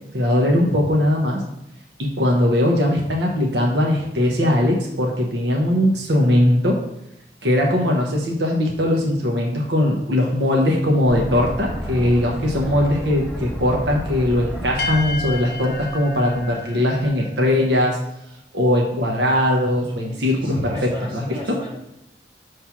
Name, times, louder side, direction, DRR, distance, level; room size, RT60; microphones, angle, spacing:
voice 1, 0.1-1.4 2.0-6.8 7.4-18.0 18.5-21.6, left 1 dB, 80° right, 0 dB, 0.9 m, -20 dB
sound 1, 11.1-17.1, equal, ahead, 0.7 m, -32 dB
sound 2, 12.2-17.3, left 3 dB, 55° left, 0.7 m, -33 dB
voice 2, 20.0-21.7, left 2 dB, 25° right, -7 dB, 2.2 m, -35 dB
5.8 x 3.3 x 5.7 m, 0.85 s
head